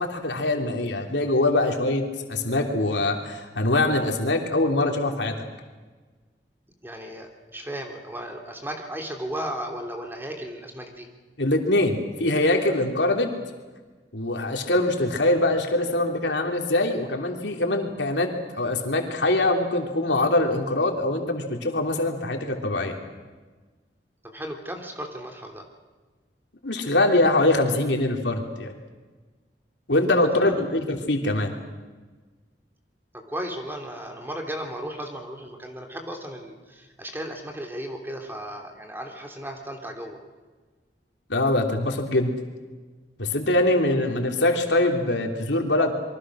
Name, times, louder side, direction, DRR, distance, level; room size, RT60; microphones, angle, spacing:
voice 1, 0.0-2.0 2.3-5.3 11.4-13.3 14.1-18.3 18.5-23.0 26.6-28.7 29.9-31.5 41.3-42.3 43.2-45.9, left 2 dB, 90° left, 3 dB, 3.3 m, -23 dB
voice 2, 6.8-11.1 24.2-25.7 30.3-30.6 33.1-40.2, right 1 dB, 15° right, 3 dB, 3.3 m, -35 dB
27.0 x 23.5 x 6.4 m, 1.3 s
head